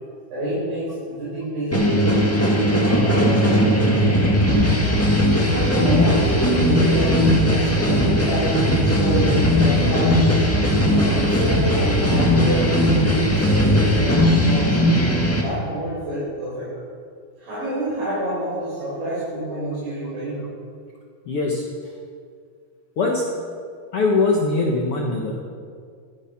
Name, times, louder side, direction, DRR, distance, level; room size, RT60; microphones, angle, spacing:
voice 1, 0.3-4.7 5.5-10.2 10.9-15.0 15.4-16.7 17.4-20.4, right 1 dB, 70° right, -10 dB, 7.2 m, -27 dB
sound 1, 1.7-15.4, equal, 10° left, 0.7 m, -18 dB
voice 2, 21.3-21.6 23.0-23.3 23.9-25.4, left 3 dB, 65° left, 0 dB, 1.5 m, -21 dB
15.0 x 14.0 x 6.0 m, 2.1 s
omnidirectional pair, 4.4 m